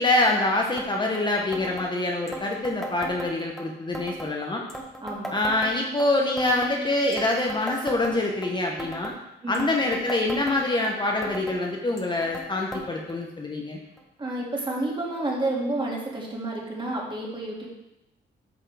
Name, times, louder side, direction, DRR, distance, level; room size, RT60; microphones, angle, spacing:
voice 1, 0.0-4.6 5.3-9.1 9.5-13.8, left 2 dB, 25° left, 0 dB, 0.9 m, -25 dB
sound 1, 0.8-0.9 1.1-1.2 1.5-1.9 2.3-3.6 3.9-4.3 4.7-6.1 6.4-6.7 7.1-8.5 8.8-9.2 9.5-10.9 11.2-11.6 12.0-12.5 12.7-12.8 13.1-13.2 14.0-14.1 14.8-14.9, right 1 dB, ahead, 1.3 m, -37 dB
voice 2, 5.0-5.3 9.4-9.7 14.2-17.7, right 2 dB, 25° right, -2 dB, 2.2 m, -30 dB
8.9 x 5.6 x 3.4 m, 0.91 s
cardioid pair, 90°, 20 cm